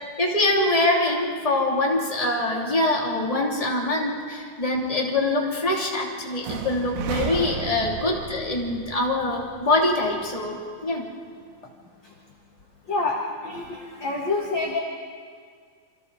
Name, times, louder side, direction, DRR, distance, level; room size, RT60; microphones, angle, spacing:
voice 1, 0.2-11.1, left 2 dB, 10° left, -2 dB, 2.5 m, -24 dB
sound 1, 6.4-10.3, right 7 dB, 85° right, 3.1 m, -34 dB
voice 2, 7.3-7.7 8.0-8.2 12.9-14.8, left 3 dB, 45° left, -1 dB, 1.7 m, -28 dB
28.5 x 25.5 x 4.1 m, 2.1 s
omnidirectional pair, 4.4 m